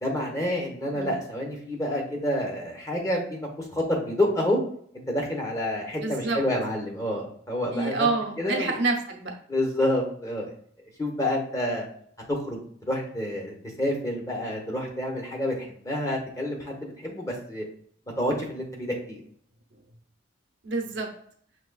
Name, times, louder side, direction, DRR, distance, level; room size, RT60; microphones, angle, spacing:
voice 1, 0.0-4.6 4.9-8.1 8.4-8.7 9.5-10.5 11.0-11.9 12.3-17.6 18.2-19.2, left 1 dB, 15° left, 0 dB, 1.0 m, -28 dB
voice 2, 6.0-6.4 7.7-9.3 20.6-21.1, right 3 dB, 65° right, 2 dB, 0.8 m, -27 dB
6.0 x 3.0 x 2.3 m, 0.62 s
head